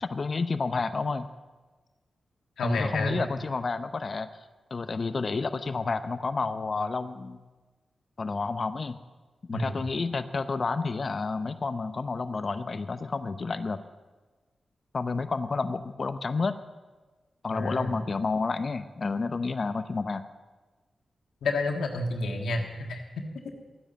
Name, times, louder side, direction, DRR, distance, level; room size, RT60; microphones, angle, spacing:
voice 1, 0.0-1.3 2.6-4.3 4.7-7.4 8.2-9.0 9.5-13.8 14.9-16.6 17.4-20.2, left 4 dB, 55° left, 11 dB, 0.7 m, -30 dB
voice 2, 2.6-3.2 9.5-9.8 17.5-17.9 21.4-23.0, left 2 dB, 85° left, 3 dB, 1.7 m, -29 dB
13.5 x 10.0 x 7.3 m, 1.3 s
supercardioid pair, 45°, 0 cm